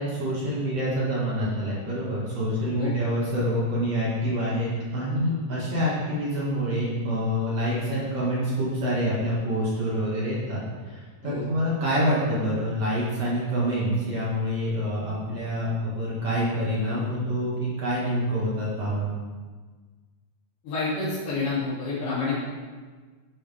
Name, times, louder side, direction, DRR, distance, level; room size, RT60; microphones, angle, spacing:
voice 1, 0.0-19.1, equal, 55° right, -7 dB, 2.7 m, -27 dB
voice 2, 20.6-22.4, left 4 dB, 50° left, -11 dB, 3.5 m, -28 dB
10.5 x 6.8 x 3.5 m, 1.4 s
omnidirectional pair, 3.5 m